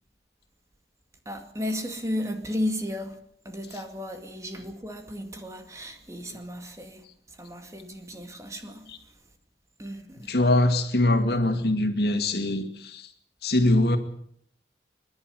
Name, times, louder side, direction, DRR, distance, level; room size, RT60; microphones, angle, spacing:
voice 1, 1.3-3.2 3.5-8.9 9.8-10.3, left 1 dB, 15° right, 2.1 m, -34 dB
voice 2, 10.3-13.1 13.4-14.0, left 1 dB, 65° left, 2.4 m, -23 dB
26.5 x 11.5 x 9.4 m
head